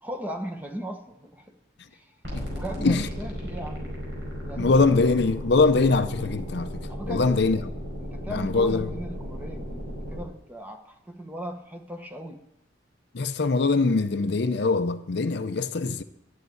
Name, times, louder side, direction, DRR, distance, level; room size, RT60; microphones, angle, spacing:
voice 1, 0.0-1.6 1.9-2.2 2.5-4.0 4.4-5.0 6.9-7.5 8.0-12.4, equal, 10° right, 1.0 m, -37 dB
sound 1, 2.2-10.3, equal, 60° right, 4.9 m, -35 dB
voice 2, 4.6-7.6 8.3-8.9 13.1-16.0, left 3 dB, 55° left, 0.6 m, -23 dB
12.0 x 7.4 x 9.2 m
head